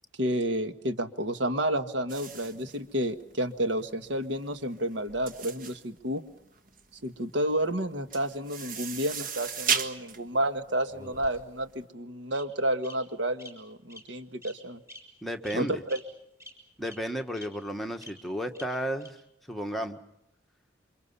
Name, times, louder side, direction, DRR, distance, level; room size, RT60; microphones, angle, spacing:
voice 1, 0.2-6.2 7.0-14.8 15.5-16.0, right 1 dB, 75° right, 9 dB, 1.6 m, -30 dB
sound 1, 2.1-11.7, right 7 dB, 45° right, 1.6 m, -36 dB
Bird vocalization bird call bird song, 10.9-11.7 12.3-12.4 12.8-12.9 13.4-13.5 13.9-14.0 14.4-14.5 14.9-15.0 15.4-15.6 15.9-16.0 16.4-16.5 16.8-16.9 17.3-17.4 18.0-18.1 18.5-18.6 19.0-19.1, left 1 dB, 15° right, 5.2 m, -46 dB
voice 2, 15.2-15.8 16.8-19.2 19.5-20.0, equal, ahead, 3 dB, 1.5 m, -33 dB
28.0 x 25.5 x 5.6 m, 0.84 s
head